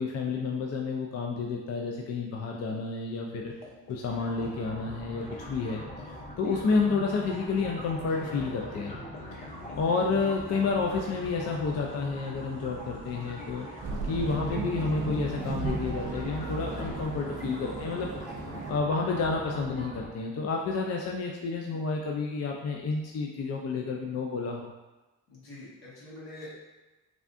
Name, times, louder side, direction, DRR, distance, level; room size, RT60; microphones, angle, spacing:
voice 1, 0.0-3.5 3.9-9.0 9.8-13.7 14.0-18.1 18.7-24.7, left 4 dB, 45° left, 0 dB, 0.4 m, -30 dB
sound 1, 3.5-13.9, left 3 dB, 90° left, 0.6 m, -52 dB
sound 2, 4.1-20.1, equal, 20° left, 0.9 m, -42 dB
sound 3, 13.8-18.8, right 3 dB, 55° right, 0.5 m, -35 dB
voice 2, 25.3-26.5, left 2 dB, 70° left, -7 dB, 1.3 m, -45 dB
3.4 x 2.4 x 2.5 m, 1.1 s
supercardioid pair, 55°, 38 cm